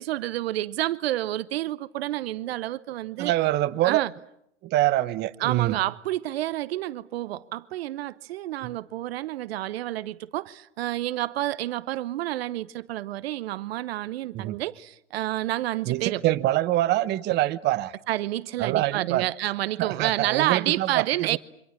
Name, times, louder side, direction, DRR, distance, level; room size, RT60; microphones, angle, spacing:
voice 1, 0.0-3.3 3.8-4.1 5.4-16.2 18.1-21.4, right 15 dB, 60° right, 0.9 m, -29 dB
voice 2, 3.2-4.0 4.6-5.7 8.6-8.7 14.3-14.6 15.9-17.9 18.6-19.3 19.8-21.4, right 15 dB, 30° right, 0.9 m, -25 dB
28.5 x 25.5 x 7.3 m
hypercardioid pair, 115°, 35 cm